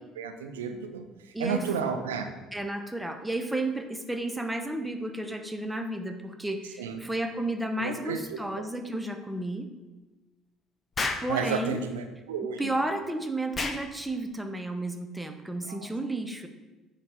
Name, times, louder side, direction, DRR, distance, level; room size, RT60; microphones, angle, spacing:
voice 1, 0.2-2.3 6.8-7.0 7.8-8.6 11.3-12.7 15.7-15.8, right 6 dB, 85° right, 7 dB, 0.6 m, -32 dB
voice 2, 1.3-1.6 2.5-9.7 11.2-11.8 12.6-16.5, right 1 dB, 10° right, 7 dB, 0.8 m, -32 dB
Explosion, 11.0-11.3 13.5-13.8, left 3 dB, 30° left, 0.7 m, -30 dB
9.7 x 4.1 x 3.5 m, 1.2 s
hypercardioid pair, 60°, 0 cm